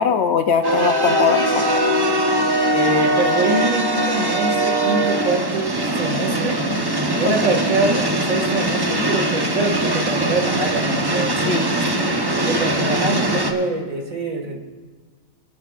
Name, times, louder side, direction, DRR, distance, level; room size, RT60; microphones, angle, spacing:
voice 1, 0.0-1.8 7.2-7.3 11.5-12.2, left 6 dB, 65° left, 8 dB, 0.8 m, -21 dB
sound 1, 0.6-13.5, right 1 dB, 20° right, 0.8 m, -21 dB
voice 2, 2.7-6.6 7.1-11.6 12.4-14.6, right 2 dB, 80° right, 1 dB, 2.2 m, -24 dB
28.5 x 9.9 x 2.4 m, 1.4 s
omnidirectional pair, 1.4 m